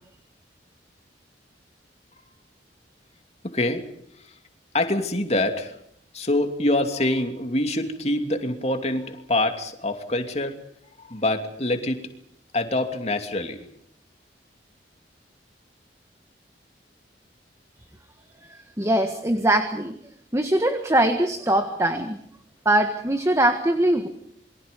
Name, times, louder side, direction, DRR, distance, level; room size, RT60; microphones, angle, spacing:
voice 1, 3.4-3.9 4.2-4.3 4.7-5.8 6.1-10.6 11.0-12.0 12.5-13.6, left 1 dB, 40° left, 6 dB, 2.7 m, -25 dB
voice 2, 18.5-19.9 20.3-22.2 22.7-24.1, right 1 dB, 15° right, 7 dB, 1.7 m, -22 dB
28.0 x 23.5 x 5.4 m, 0.71 s
head